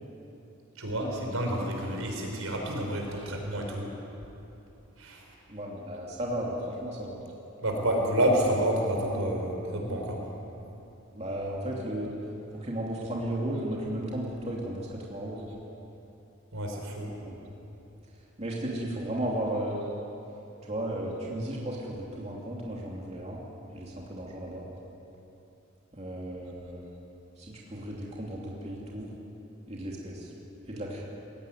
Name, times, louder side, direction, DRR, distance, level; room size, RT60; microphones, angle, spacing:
voice 1, 0.8-3.9 5.0-5.2 7.6-10.2 16.5-17.1, right 1 dB, 80° right, 1 dB, 4.8 m, -29 dB
voice 2, 5.5-7.2 11.1-12.1 12.5-15.5 18.4-19.9 20.7-23.4 23.7-24.6 25.9-26.9 27.4-29.2 29.7-30.3 30.6-31.0, right 1 dB, 30° right, -3 dB, 2.9 m, -34 dB
21.0 x 17.5 x 9.4 m, 2.9 s
head